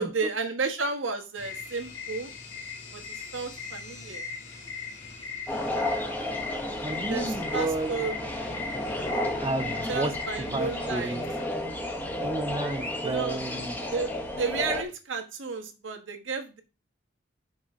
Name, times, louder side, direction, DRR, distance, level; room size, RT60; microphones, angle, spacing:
voice 1, 0.0-2.3 2.9-3.0 3.3-4.3 7.1-8.7 9.9-11.1 13.0-13.4 13.9-16.6, right 4 dB, 90° right, 1.4 m, -32 dB
sound 1, 1.4-11.5, left 4 dB, 80° left, 1.6 m, -40 dB
sound 2, 5.5-14.8, left 1 dB, 10° left, 1.0 m, -32 dB
voice 2, 6.8-7.9 9.4-10.1 10.4-11.3 12.2-13.8, right 2 dB, 20° right, 0.5 m, -32 dB
6.2 x 3.7 x 5.9 m
head